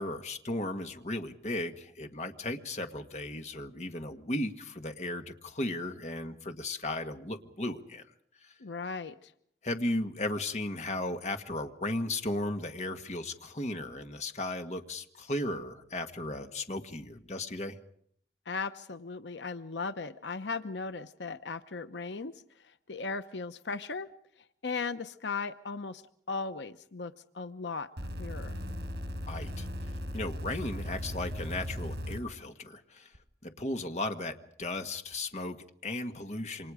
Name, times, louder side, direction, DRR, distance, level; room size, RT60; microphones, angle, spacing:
voice 1, 0.0-8.0 8.4-8.5 9.6-17.8 29.3-29.7 30.1-33.1 33.4-36.7, left 1 dB, 40° left, 6 dB, 1.7 m, -35 dB
voice 2, 8.6-9.3 18.5-22.4 22.9-24.1 24.6-26.0 26.3-27.9 28.2-28.6, left 4 dB, 90° left, 11 dB, 0.9 m, -37 dB
sound 1, 28.0-32.2 33.1-33.2, left 1 dB, 75° right, 5.1 m, -37 dB
28.0 x 26.0 x 5.0 m, 0.66 s
head